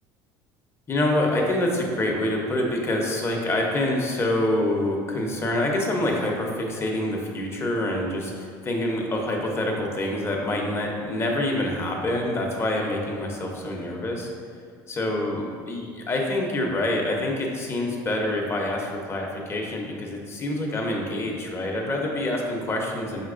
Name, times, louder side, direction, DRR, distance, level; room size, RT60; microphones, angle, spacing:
voice 1, 0.9-14.3 14.9-23.2, left 1 dB, 30° left, 0 dB, 0.7 m, -26 dB
5.8 x 2.9 x 2.5 m, 2.1 s
supercardioid pair, 100°, 9 cm